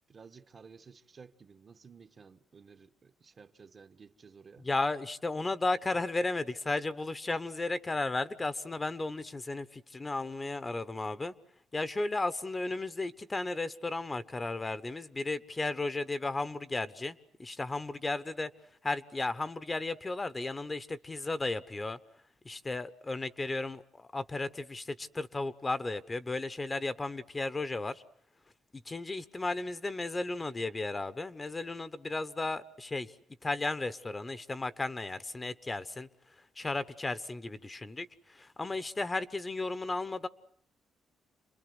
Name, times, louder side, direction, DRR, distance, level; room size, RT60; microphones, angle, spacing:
voice 1, 0.1-4.7, right 5 dB, 40° right, 1.3 m, -54 dB
voice 2, 4.6-11.3 11.7-18.5 18.8-22.0 22.4-28.0 28.7-33.2 33.4-36.1 36.6-40.3, left 2 dB, 25° left, 1.1 m, -34 dB
28.5 x 22.0 x 8.1 m
cardioid pair, 90°, 0 cm